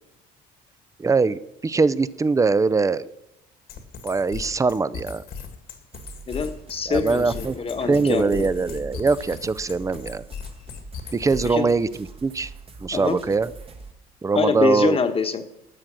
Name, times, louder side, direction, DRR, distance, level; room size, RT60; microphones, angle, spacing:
voice 1, 1.0-3.1 4.0-5.2 6.9-7.6 7.9-10.2 11.1-11.9 12.2-12.5 12.8-13.5 14.2-15.0, right 4 dB, 20° right, 17 dB, 0.5 m, -22 dB
sound 1, 3.7-11.7, left 6 dB, 70° left, 1.9 m, -37 dB
sound 2, 5.9-13.9, right 4 dB, 35° right, 1.2 m, -44 dB
voice 2, 6.3-8.5 11.4-11.7 12.9-13.2 14.3-15.4, left 5 dB, 35° left, 8 dB, 1.2 m, -24 dB
sound 3, 7.8-10.3, right 6 dB, 70° right, 1.6 m, -43 dB
13.0 x 7.3 x 6.2 m, 0.85 s
cardioid pair, 110°, 17 cm